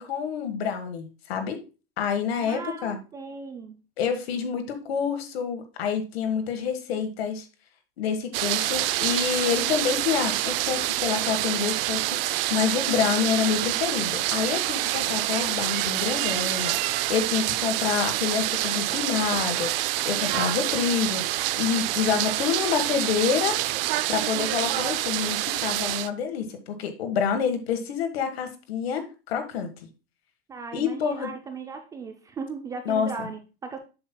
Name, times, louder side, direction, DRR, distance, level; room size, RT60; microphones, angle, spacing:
voice 1, 0.0-1.6 2.0-3.0 4.0-7.5 8.0-23.6 24.1-29.7 30.7-31.3 32.8-33.3, left 7 dB, 80° left, 7 dB, 1.5 m, -28 dB
voice 2, 2.4-3.8 30.5-33.8, right 5 dB, 10° right, 6 dB, 0.3 m, -37 dB
sound 1, 8.3-26.1, right 15 dB, 65° right, 0.5 m, -27 dB
7.7 x 7.1 x 2.2 m, 0.32 s
supercardioid pair, 150°, 30 cm